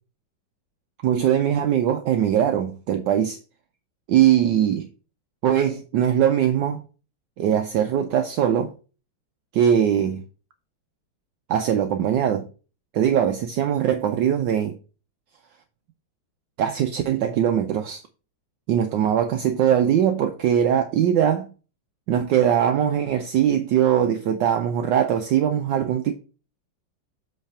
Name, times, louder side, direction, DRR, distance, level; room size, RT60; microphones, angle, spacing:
voice 1, 1.0-3.4 4.1-4.9 5.4-6.8 7.4-8.7 9.5-10.2 11.5-12.5 12.9-14.8 16.6-18.0 18.7-21.5 22.1-26.2, right 9 dB, 70° right, 1.2 m, -21 dB
8.0 x 3.3 x 5.5 m
omnidirectional pair, 2.2 m